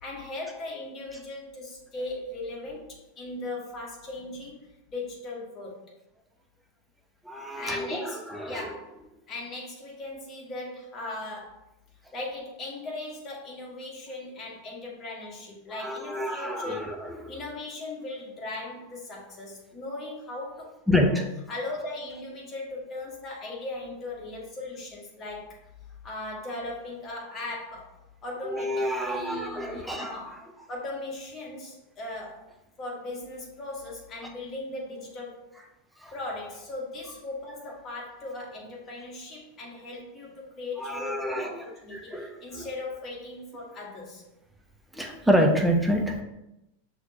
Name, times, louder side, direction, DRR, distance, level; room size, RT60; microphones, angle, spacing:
voice 1, 0.0-5.8 7.5-9.0 9.3-11.6 12.1-17.0 17.3-21.1 21.5-25.6 26.0-27.9 28.2-32.4 32.8-35.4 36.1-44.2, left 2 dB, 25° left, -3 dB, 1.3 m, -38 dB
voice 2, 7.3-8.7 15.7-16.9 20.9-21.1 28.4-30.1 36.0-36.1 40.8-41.5 41.9-42.3 42.5-42.7 44.9-46.2, equal, 5° right, 1 dB, 0.6 m, -27 dB
5.8 x 2.9 x 2.6 m, 0.89 s
figure-of-eight pair, 90°, 0 cm